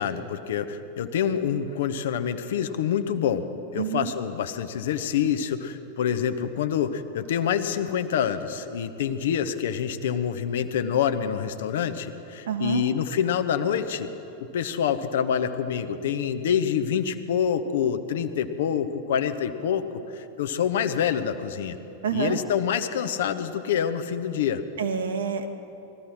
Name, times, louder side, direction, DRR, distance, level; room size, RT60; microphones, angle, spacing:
voice 1, 0.0-3.5 3.7-14.1 14.4-19.8 20.1-21.8 22.1-24.6, left 8 dB, 60° left, 10 dB, 0.8 m, -26 dB
voice 2, 3.8-4.1 12.5-12.8 22.0-22.4 24.8-25.5, right 7 dB, 65° right, 7 dB, 1.2 m, -28 dB
20.5 x 14.0 x 4.4 m, 2.9 s
figure-of-eight pair, 90°, 0 cm